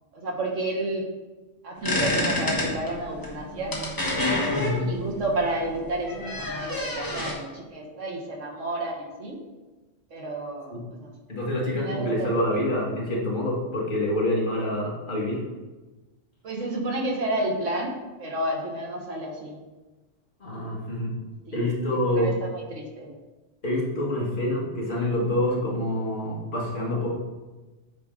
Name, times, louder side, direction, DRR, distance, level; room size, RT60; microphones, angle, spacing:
voice 1, 0.1-1.1 1.6-3.8 4.8-9.4 10.1-11.1 11.7-12.6 16.4-19.6 21.5-21.7 22.1-23.1, right 2 dB, 80° right, -1 dB, 1.6 m, -31 dB
sound 1, 1.8-7.3, left 1 dB, 20° left, 1.1 m, -28 dB
voice 2, 4.5-4.9 10.7-10.8 11.3-15.4 20.4-21.1 21.5-22.3 23.6-27.1, left 1 dB, 45° left, -4 dB, 1.8 m, -26 dB
8.5 x 4.6 x 3.7 m, 1.2 s
omnidirectional pair, 1.3 m